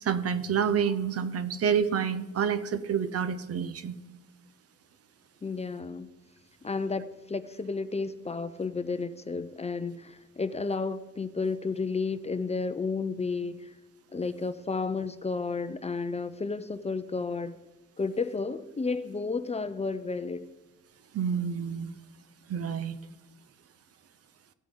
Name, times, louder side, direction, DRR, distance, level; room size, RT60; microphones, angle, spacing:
voice 1, 0.0-4.0 21.1-21.9 22.5-23.0, right 7 dB, 50° right, 13 dB, 0.8 m, -28 dB
voice 2, 5.4-6.1 6.6-13.7 14.1-17.6 18.0-20.5, left 4 dB, 20° left, 11 dB, 0.5 m, -32 dB
15.0 x 8.7 x 3.8 m, 1.1 s
cardioid pair, 90°, 30 cm